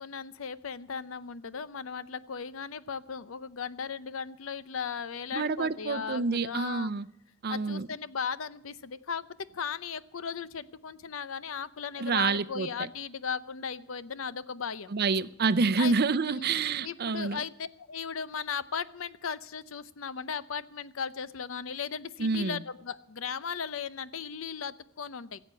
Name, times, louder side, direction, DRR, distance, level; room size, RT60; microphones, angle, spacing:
voice 1, 0.0-6.9 7.5-9.3 9.5-14.9 15.8-15.9 16.2-16.5 16.8-25.4, left 6 dB, 80° left, 16 dB, 0.7 m, -37 dB
voice 2, 5.3-7.1 7.4-7.9 12.0-12.9 14.9-17.4 22.2-22.6, right 4 dB, 50° right, 14 dB, 0.6 m, -28 dB
16.5 x 8.0 x 8.3 m, 0.80 s
head